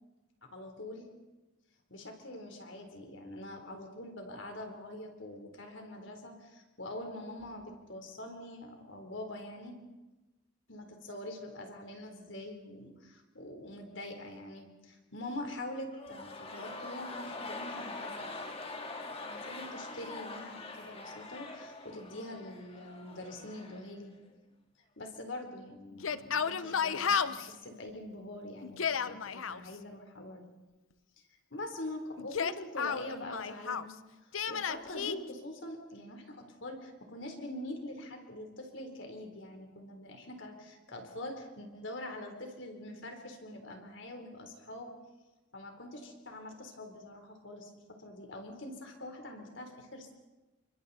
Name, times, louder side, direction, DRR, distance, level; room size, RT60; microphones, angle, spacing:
voice 1, 0.4-1.1 1.9-9.8 10.7-18.3 19.2-24.1 25.0-30.4 31.5-33.9 34.2-44.9 45.5-50.1, left 1 dB, 65° left, 4 dB, 3.8 m, -44 dB
sound 1, 15.9-24.0 24.2-24.3, left 3 dB, 30° left, 1.9 m, -44 dB
Yell, 25.9-27.5 28.6-29.6 32.2-33.9 34.3-35.2, left 7 dB, 80° left, 0.7 m, -32 dB
30.0 x 25.5 x 4.2 m, 1.1 s
head